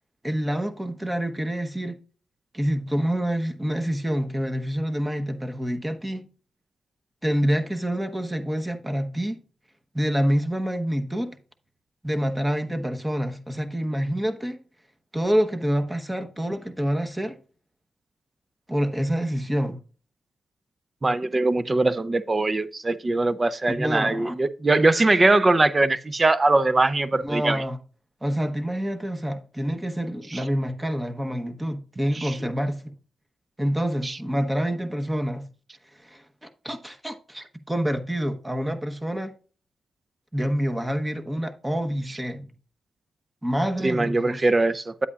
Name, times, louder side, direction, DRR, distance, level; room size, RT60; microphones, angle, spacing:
voice 1, 0.2-2.0 2.5-6.3 7.2-9.4 9.9-11.4 12.0-14.6 15.1-17.4 18.7-19.8 23.7-24.4 27.1-27.8 28.2-32.8 33.6-35.4 36.0-39.3 40.3-42.5 43.4-44.5, equal, 10° right, 1.0 m, -27 dB
voice 2, 21.0-27.6 30.3-30.4 32.1-32.4 34.0-34.2 43.8-45.1, right 2 dB, 25° right, 0.6 m, -21 dB
9.6 x 8.2 x 2.4 m
cardioid pair, 85°, 0 cm